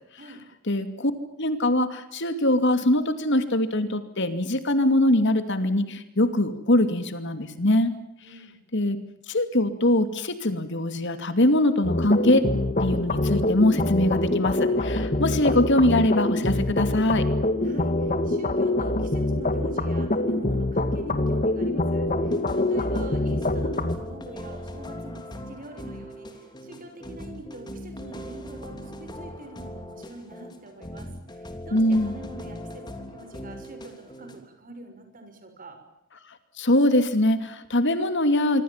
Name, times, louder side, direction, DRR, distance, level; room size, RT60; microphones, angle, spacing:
voice 1, 0.7-1.1 1.4-7.9 8.7-9.0 9.3-12.4 12.8-17.3 31.7-32.1 36.6-38.6, left 1 dB, 60° left, 10 dB, 2.6 m, -22 dB
voice 2, 8.2-8.6 17.6-35.8, right 2 dB, 40° right, 7 dB, 6.2 m, -45 dB
sound 1, 11.8-24.0, left 2 dB, 35° left, 2.0 m, -25 dB
sound 2, 22.1-34.4, left 1 dB, 20° left, 3.2 m, -40 dB
25.5 x 25.5 x 7.4 m, 0.79 s
head